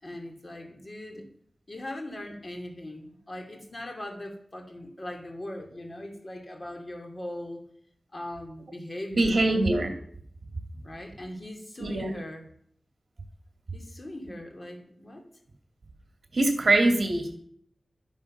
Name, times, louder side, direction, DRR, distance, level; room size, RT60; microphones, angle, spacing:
voice 1, 0.0-1.3 1.7-7.6 8.1-9.5 10.8-12.5 13.7-15.3, left 1 dB, 35° left, 3 dB, 2.8 m, -40 dB
voice 2, 9.1-9.9 11.8-12.1 16.3-17.4, right 2 dB, 55° right, 4 dB, 2.3 m, -23 dB
12.5 x 10.5 x 6.6 m, 0.65 s
wide cardioid pair, 100°, 0 cm